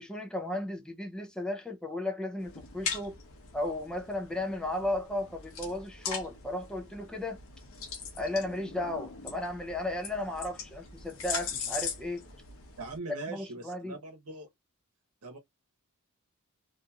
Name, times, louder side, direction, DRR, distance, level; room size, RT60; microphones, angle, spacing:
voice 1, 0.0-3.2 3.5-7.4 8.2-12.2 13.1-13.9, left 1 dB, 5° left, 0.4 m, -35 dB
sound 1, 2.4-13.0, left 5 dB, 65° left, 0.8 m, -41 dB
voice 2, 12.8-14.5 15.2-15.4, right 3 dB, 80° right, 1.0 m, -41 dB
2.8 x 2.6 x 2.3 m
head